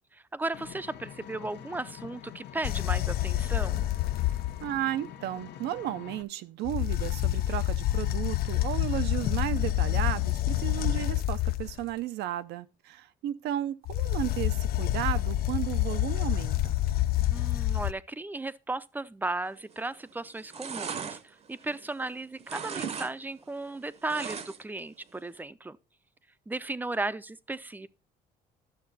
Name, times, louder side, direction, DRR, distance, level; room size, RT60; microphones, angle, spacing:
voice 1, 0.1-3.9 17.3-25.8 26.5-27.9, right 2 dB, 10° right, 0.5 m, -35 dB
Vehicle, 0.5-6.2, left 10 dB, 85° left, 1.1 m, -46 dB
sound 1, 2.6-4.8 6.7-11.8 13.9-17.9, left 14 dB, 65° left, 0.5 m, -28 dB
voice 2, 4.6-16.8, right 13 dB, 80° right, 0.7 m, -34 dB
sound 2, 19.7-20.0 20.3-22.1 22.4-23.1 23.4-24.8 25.1-25.2, right 6 dB, 40° right, 0.8 m, -38 dB
12.0 x 6.7 x 4.0 m
cardioid pair, 110°, 17 cm